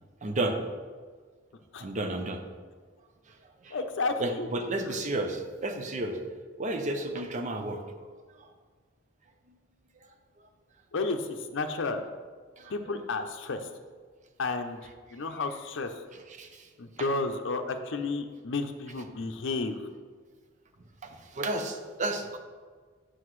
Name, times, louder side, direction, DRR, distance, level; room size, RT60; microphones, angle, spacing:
voice 1, 0.2-0.7 1.8-2.4 3.6-3.8 4.2-6.2 6.6-7.8 8.4-8.5 12.6-13.0 16.3-16.7 17.0-17.1 21.0-22.4, right 2 dB, 40° right, 5 dB, 0.7 m, -32 dB
voice 2, 3.7-4.5 10.9-12.0 12.7-13.6 14.4-14.8 15.1-15.9 16.8-19.8, left 3 dB, 70° left, 6 dB, 0.6 m, -32 dB
7.9 x 6.2 x 3.1 m, 1.5 s
head